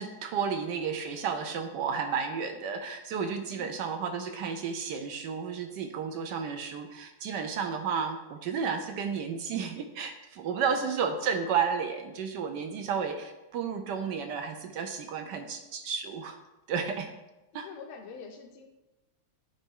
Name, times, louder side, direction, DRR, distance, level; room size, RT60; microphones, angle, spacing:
voice 1, 0.0-16.4 16.7-17.1 17.5-17.7, right 6 dB, 75° right, 6 dB, 1.0 m, -32 dB
voice 2, 3.4-3.8 6.2-6.7 10.5-10.9 15.1-15.5 17.5-18.7, left 5 dB, 85° left, 4 dB, 1.7 m, -48 dB
10.0 x 4.0 x 3.6 m, 1.0 s
omnidirectional pair, 2.3 m